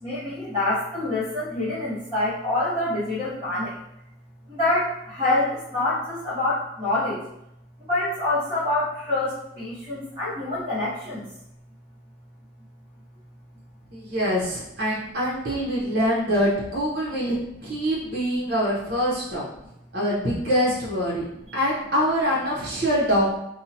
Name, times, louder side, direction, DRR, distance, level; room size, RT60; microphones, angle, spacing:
voice 1, 0.0-3.7 4.5-7.2 7.9-11.2 21.5-21.6, left 2 dB, 20° right, -14 dB, 0.9 m, -26 dB
voice 2, 13.9-19.4 19.9-21.2 21.5-23.4, equal, 50° right, -6 dB, 0.8 m, -24 dB
2.6 x 2.1 x 2.7 m, 0.82 s
head